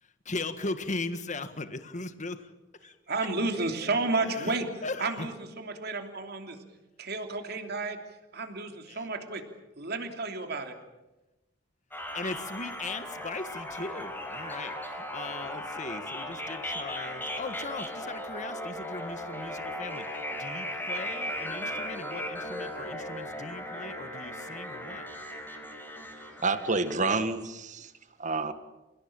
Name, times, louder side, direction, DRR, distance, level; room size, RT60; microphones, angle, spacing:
voice 1, 0.0-2.4 2.8-2.9 4.2-5.3 8.9-9.1 12.1-25.1, left 3 dB, 40° left, 10 dB, 1.6 m, -38 dB
voice 2, 3.1-4.7 5.0-5.3 5.6-6.6 7.0-8.0 8.3-9.4 9.8-10.7, right 3 dB, 60° right, 5 dB, 3.1 m, -31 dB
sound 1, 11.9-26.9, equal, 10° left, 5.4 m, -37 dB
voice 3, 26.4-27.9 28.2-28.5, right 3 dB, 40° right, 10 dB, 1.8 m, -28 dB
29.0 x 17.5 x 8.9 m, 1.0 s
head